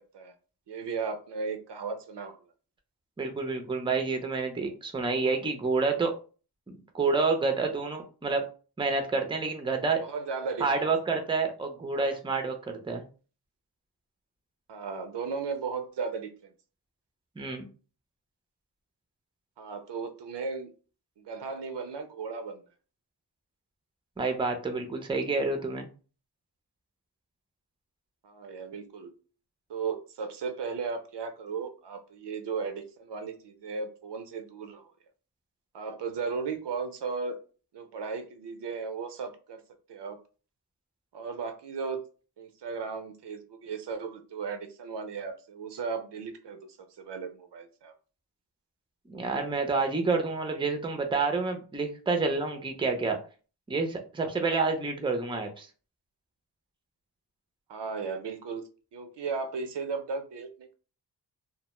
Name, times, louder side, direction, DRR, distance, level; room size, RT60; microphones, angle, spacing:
voice 1, 0.7-2.5 10.0-10.9 11.9-12.1 14.7-16.5 19.6-20.7 21.2-22.6 28.2-29.1 29.7-34.9 35.7-37.4 37.7-39.6 39.9-40.2 41.1-42.0 42.4-47.9 57.7-58.6 58.9-60.7, right 5 dB, 70° right, 7 dB, 0.5 m, -36 dB
voice 2, 3.2-6.1 6.9-8.4 8.8-10.0 10.6-13.0 17.4-17.7 24.2-25.9 49.1-53.2 53.7-55.7, right 4 dB, 10° right, 4 dB, 0.5 m, -28 dB
2.1 x 2.0 x 2.9 m, 0.36 s
cardioid pair, 55°, 43 cm